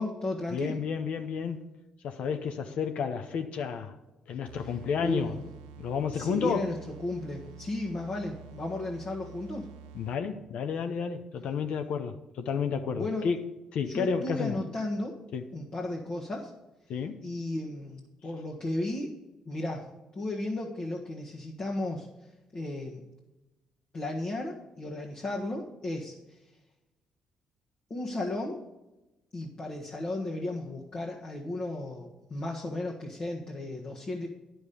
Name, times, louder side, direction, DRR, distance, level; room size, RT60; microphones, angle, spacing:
voice 1, 0.0-0.8 5.0-5.4 6.1-9.7 12.9-13.3 13.9-15.1 15.5-16.5 17.2-19.1 19.4-19.9 20.1-22.1 22.5-23.0 23.9-26.2 27.9-28.6 29.3-34.3, left 1 dB, 50° left, 1.5 m, -34 dB
voice 2, 0.5-1.7 2.0-3.9 4.3-5.4 5.8-6.7 9.9-13.4 13.7-14.6 15.3-15.4 16.9-17.2, left 6 dB, 70° left, 0.7 m, -31 dB
sound 1, 4.5-10.4, right 7 dB, 85° right, 0.5 m, -49 dB
9.8 x 6.2 x 5.3 m
hypercardioid pair, 50°, 2 cm